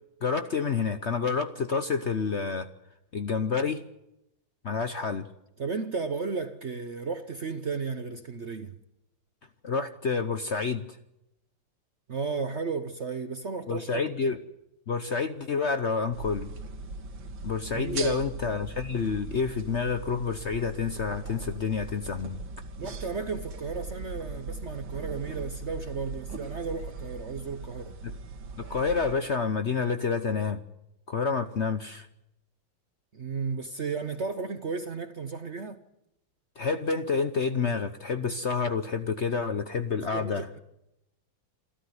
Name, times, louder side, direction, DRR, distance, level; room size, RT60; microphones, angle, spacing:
voice 1, 0.2-2.7 3.1-3.8 4.6-5.3 9.6-10.8 13.7-14.4 14.9-16.5 17.4-22.4 28.6-30.6 31.1-32.1 36.6-40.5, left 5 dB, 45° left, 1.0 m, -28 dB
voice 2, 5.6-8.8 12.1-14.0 17.7-18.2 22.8-28.0 33.1-35.8 40.1-40.6, right 4 dB, 50° right, 1.0 m, -34 dB
sound 1, 16.1-29.2, right 3 dB, 80° right, 2.4 m, -40 dB
28.0 x 13.0 x 9.4 m
omnidirectional pair, 2.1 m